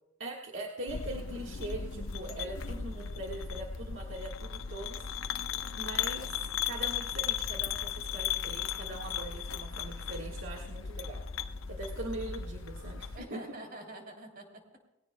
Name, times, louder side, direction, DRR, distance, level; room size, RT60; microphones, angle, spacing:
voice 1, 0.2-11.2 11.7-13.4, right 1 dB, 70° right, -1 dB, 1.6 m, -42 dB
sound 1, 0.9-13.2, left 7 dB, 80° left, 0.8 m, -36 dB
voice 2, 13.1-14.8, right 1 dB, 45° right, 2 dB, 3.4 m, -46 dB
19.5 x 17.0 x 2.3 m, 0.98 s
head